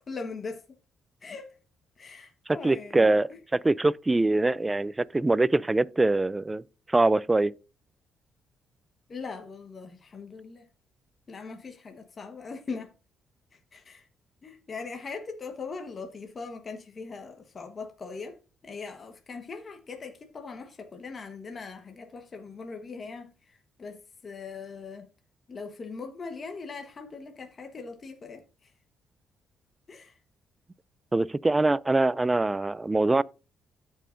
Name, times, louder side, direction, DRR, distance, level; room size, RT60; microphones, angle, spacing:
voice 1, 0.1-0.7 1.2-1.6 2.0-3.4 9.1-10.7 11.3-12.9 13.5-14.1 14.4-25.1 25.5-28.7 29.9-30.2, left 4 dB, 40° left, 1.3 m, -40 dB
voice 2, 2.5-6.6 6.9-7.5 31.1-33.2, right 2 dB, 15° right, 0.4 m, -23 dB
16.0 x 5.6 x 2.6 m
cardioid pair, 90°, 0 cm